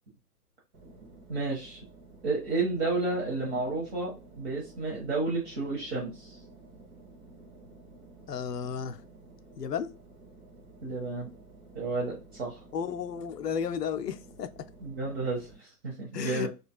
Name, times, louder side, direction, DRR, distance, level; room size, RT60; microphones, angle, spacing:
sound 1, 0.7-15.6, right 2 dB, 65° right, 1.6 m, -53 dB
voice 1, 1.3-1.8 2.2-6.4 10.8-11.3 11.7-12.6 14.8-16.5, right 3 dB, 40° right, 1.1 m, -31 dB
voice 2, 8.3-9.0 9.6-9.9 12.7-14.7 16.1-16.5, left 7 dB, 85° left, 0.6 m, -33 dB
3.8 x 2.3 x 2.3 m
figure-of-eight pair, 120°, 47 cm